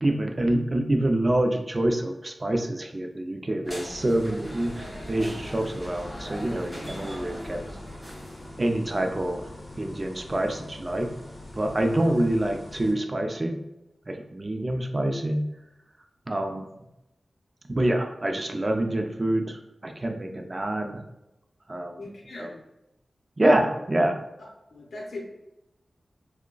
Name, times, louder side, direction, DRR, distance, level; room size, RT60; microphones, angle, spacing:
voice 1, 0.0-7.6 8.6-9.5 9.8-11.2 11.5-13.6 14.1-15.5 16.3-16.7 17.7-21.0 21.7-22.0 22.4-22.5 23.4-24.2, right 1 dB, 30° right, 4 dB, 0.4 m, -26 dB
sound 1, 3.6-8.6, equal, 5° right, 1.5 m, -40 dB
sound 2, 3.9-12.9, left 1 dB, 35° left, 0.7 m, -43 dB
voice 2, 22.0-22.6 24.7-25.2, left 2 dB, 85° left, -2 dB, 0.6 m, -39 dB
4.8 x 2.1 x 2.2 m, 0.92 s
wide cardioid pair, 85°, 0 cm